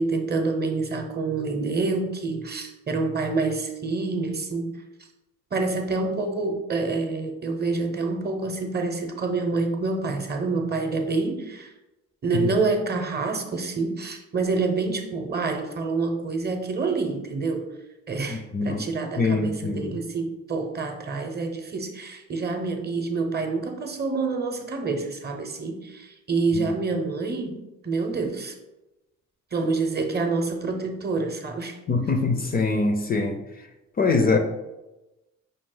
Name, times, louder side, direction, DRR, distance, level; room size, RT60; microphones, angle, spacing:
voice 1, 0.0-4.8 5.5-11.7 12.2-17.7 18.1-28.5 29.5-31.8, right 3 dB, 35° right, 4 dB, 0.7 m, -27 dB
voice 2, 18.3-18.8 19.2-20.0 26.6-26.7 31.9-33.4 34.0-34.4, left 3 dB, 30° left, 5 dB, 0.5 m, -23 dB
5.2 x 2.4 x 3.8 m, 1.0 s
cardioid pair, 90°, 30 cm